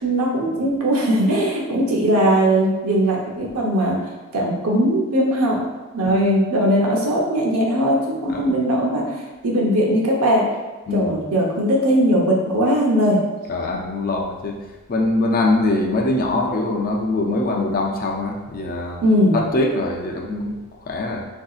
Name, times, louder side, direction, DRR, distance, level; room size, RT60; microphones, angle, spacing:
voice 1, 0.0-4.0 4.3-5.6 5.9-10.5 10.9-13.2 19.0-19.4, equal, 75° right, -2 dB, 0.7 m, -19 dB
voice 2, 13.5-14.6 14.9-19.0 19.3-21.2, left 2 dB, 40° left, 0 dB, 0.4 m, -23 dB
3.7 x 2.7 x 2.4 m, 1.2 s
head